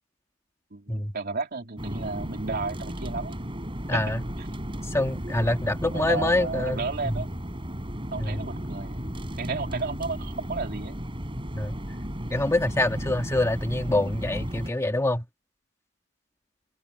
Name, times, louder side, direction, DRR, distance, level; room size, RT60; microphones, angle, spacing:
voice 1, 0.7-3.4 3.9-4.5 5.8-7.3 8.1-11.0, right 3 dB, 50° right, 2.8 m, -33 dB
sound 1, 1.8-14.7, equal, 25° right, 5.7 m, -34 dB
voice 2, 3.9-4.2 4.8-7.2 8.2-8.4 11.5-11.7 12.3-15.2, left 1 dB, 15° left, 1.7 m, -26 dB
head